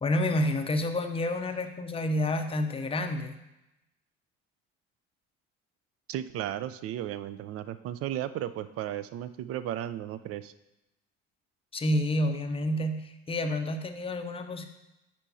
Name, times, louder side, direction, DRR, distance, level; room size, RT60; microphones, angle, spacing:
voice 1, 0.0-3.3 11.7-14.7, left 1 dB, 15° left, 6 dB, 0.6 m, -29 dB
voice 2, 6.1-10.5, right 12 dB, 40° right, 13 dB, 0.4 m, -35 dB
9.7 x 4.5 x 2.7 m, 0.93 s
figure-of-eight pair, 55°, 37 cm